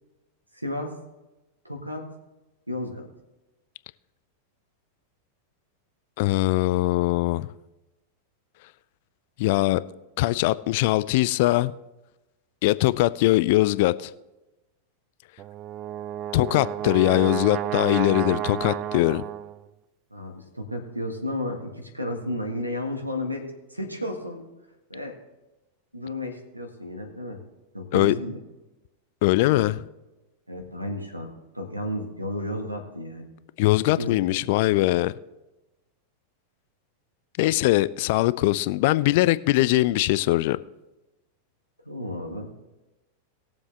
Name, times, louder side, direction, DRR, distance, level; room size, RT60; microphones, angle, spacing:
voice 1, 0.5-0.9 1.6-2.1 2.7-3.1 20.1-24.4 24.9-25.1 25.9-27.4 27.7-28.4 29.5-29.7 30.5-33.3 34.0-34.5 41.8-42.5, left 1 dB, 85° right, 1.7 m, -33 dB
voice 2, 6.2-7.5 9.4-9.8 10.2-11.7 12.6-14.1 16.3-19.2 27.9-28.2 29.2-29.8 33.6-35.1 37.4-40.6, left 18 dB, 50° left, 0.4 m, -21 dB
Brass instrument, 15.4-19.7, right 11 dB, 35° right, 0.4 m, -31 dB
20.0 x 7.2 x 3.3 m
figure-of-eight pair, 90°, 0 cm